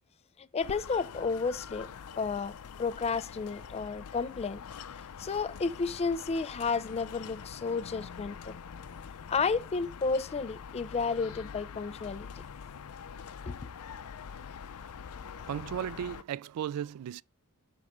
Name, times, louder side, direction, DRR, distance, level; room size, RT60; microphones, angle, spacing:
voice 1, 0.4-1.9 2.2-4.6 5.2-8.5 9.3-12.3 13.5-13.6, left 4 dB, 30° left, 0.4 m, -32 dB
sound 1, 0.6-16.2, left 7 dB, 80° left, 0.5 m, -45 dB
voice 2, 15.3-17.2, right 9 dB, 80° right, 0.3 m, -36 dB
6.1 x 3.7 x 4.8 m
head